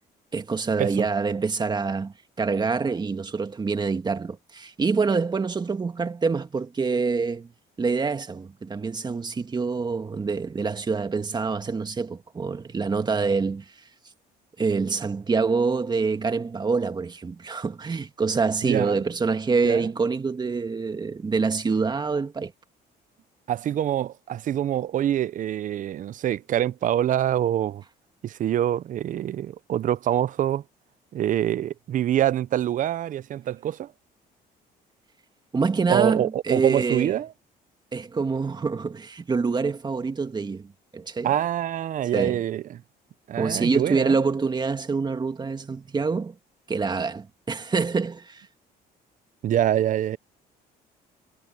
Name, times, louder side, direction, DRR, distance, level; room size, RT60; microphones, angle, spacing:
voice 1, 0.3-7.5 7.8-13.8 14.6-22.5 35.5-37.1 37.9-41.3 42.1-42.4 43.4-46.4 46.7-48.5, right 4 dB, 25° right, 1.9 m, -26 dB
voice 2, 18.6-19.0 19.6-19.9 23.5-27.8 28.2-30.6 31.1-33.9 35.9-37.3 41.2-42.6 43.3-44.2 49.4-50.2, right 11 dB, 50° right, 0.7 m, -25 dB
cardioid pair, 110°, 17 cm